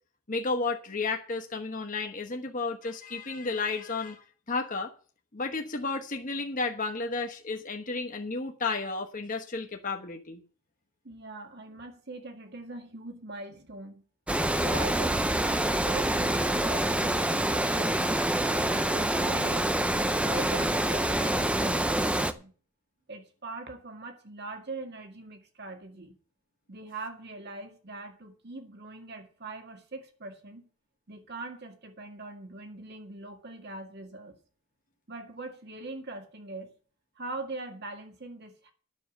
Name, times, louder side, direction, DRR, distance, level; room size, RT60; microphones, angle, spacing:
voice 1, 0.3-4.9 5.3-10.4, left 3 dB, 40° left, 1.1 m, -32 dB
voice 2, 11.0-14.0 14.6-17.9 18.4-22.5 23.1-26.1 26.7-30.7 31.1-34.4 35.1-36.7 37.2-38.7, right 2 dB, 50° right, 2.0 m, -41 dB
Water, 14.3-22.3, right 1 dB, 5° right, 0.5 m, -26 dB
9.6 x 7.0 x 7.9 m
head